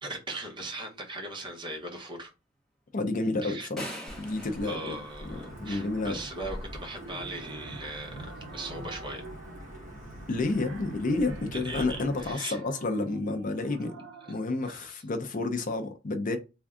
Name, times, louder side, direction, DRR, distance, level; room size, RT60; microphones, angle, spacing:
voice 1, 0.0-2.3 3.4-3.7 4.6-9.2 11.5-12.6 14.3-14.4 14.6-15.0, right 2 dB, 25° right, 0.9 m, -39 dB
voice 2, 2.9-3.9 4.2-5.0 5.3-6.2 10.3-13.9 14.3-16.4, left 2 dB, 40° left, 0.5 m, -30 dB
sound 1, 3.8-5.9, equal, 5° left, 0.9 m, -42 dB
Wind / Thunder / Rain, 4.1-12.3, equal, 40° right, 1.4 m, -44 dB
sound 2, 4.1-5.1 6.6-14.7, right 3 dB, 65° right, 0.5 m, -49 dB
3.5 x 2.2 x 3.6 m
head